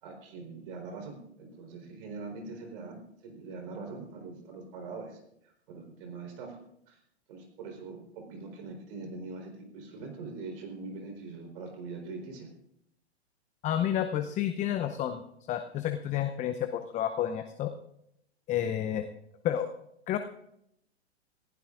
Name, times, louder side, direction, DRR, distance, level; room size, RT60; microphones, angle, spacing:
voice 1, 0.0-5.2 5.4-6.6 6.9-7.0 7.3-12.5, right 3 dB, 55° right, 3 dB, 4.2 m, -43 dB
voice 2, 13.6-15.2 15.5-17.7 18.5-19.1 19.4-19.7 20.1-20.2, left 10 dB, 20° left, 9 dB, 0.7 m, -30 dB
25.0 x 15.5 x 2.5 m, 0.77 s
hypercardioid pair, 110°, 33 cm